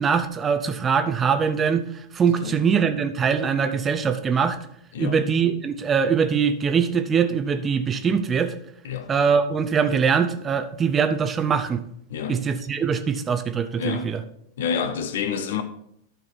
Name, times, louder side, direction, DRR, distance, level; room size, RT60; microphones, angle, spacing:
voice 1, 0.0-1.9 2.1-4.6 5.0-8.5 9.1-11.8 12.3-14.2, right 6 dB, 20° right, 0.6 m, -22 dB
voice 2, 12.1-12.4 13.8-14.1 14.6-15.6, left 6 dB, 60° left, 0.8 m, -28 dB
12.5 x 4.4 x 4.1 m
figure-of-eight pair, 90°, 0 cm